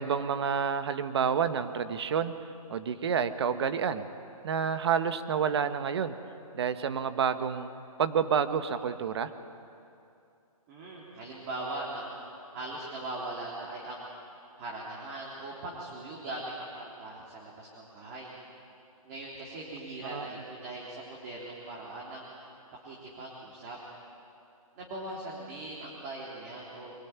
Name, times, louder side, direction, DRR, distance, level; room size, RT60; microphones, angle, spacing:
voice 1, 0.0-2.3 2.7-4.0 4.4-6.1 6.5-7.7 8.0-9.3 20.0-20.3, right 7 dB, 45° right, 11 dB, 1.3 m, -29 dB
voice 2, 10.7-12.1 12.5-14.0 14.6-18.3 19.0-22.3 22.8-23.8 24.7-26.9, right 2 dB, 25° right, -4 dB, 3.4 m, -40 dB
23.5 x 21.5 x 9.6 m, 2.6 s
hypercardioid pair, 165°, 19 cm